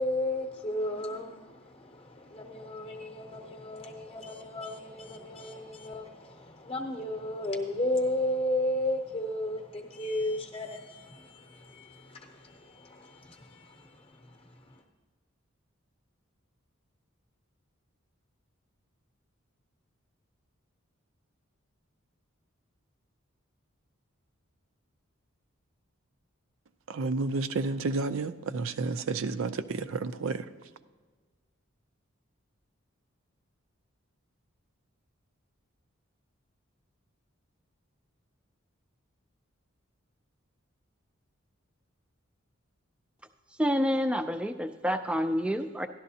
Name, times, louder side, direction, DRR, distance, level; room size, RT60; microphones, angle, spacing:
voice 1, 0.0-14.8, left 1 dB, 25° left, 0.8 m, -34 dB
voice 2, 26.9-30.5, right 3 dB, 75° right, 0.5 m, -31 dB
voice 3, 43.6-45.9, equal, 5° right, 0.4 m, -28 dB
13.0 x 11.5 x 2.8 m
head